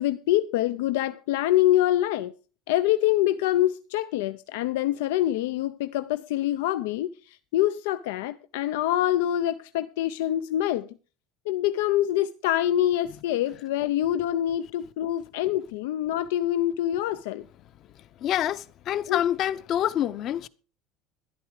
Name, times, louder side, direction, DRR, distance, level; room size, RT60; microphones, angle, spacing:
voice 1, 0.0-2.3 2.7-10.9 11.5-17.4 19.1-19.2, left 13 dB, 90° left, 0.5 m, -25 dB
voice 2, 18.2-20.5, left 11 dB, 40° left, 0.7 m, -26 dB
12.0 x 11.0 x 4.8 m
cardioid pair, 145°, 0 cm